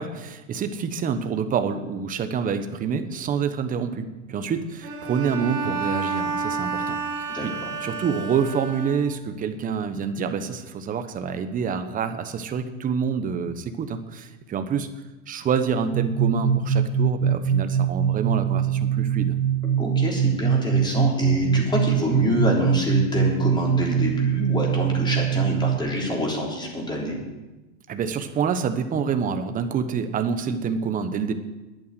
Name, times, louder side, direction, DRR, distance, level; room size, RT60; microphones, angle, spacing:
voice 1, 0.0-7.0 7.4-7.5 7.8-14.9 15.3-19.4 27.9-31.3, right 6 dB, 20° right, 9 dB, 1.0 m, -27 dB
Bowed string instrument, 4.8-9.4, right 4 dB, 45° right, 3.2 m, -30 dB
voice 2, 7.3-7.7 19.8-27.2, left 1 dB, 10° left, -2 dB, 3.6 m, -26 dB
sound 1, 15.9-25.8, right 8 dB, 80° right, 1.3 m, -23 dB
10.5 x 9.1 x 9.2 m, 1.1 s
supercardioid pair, 145°, 42 cm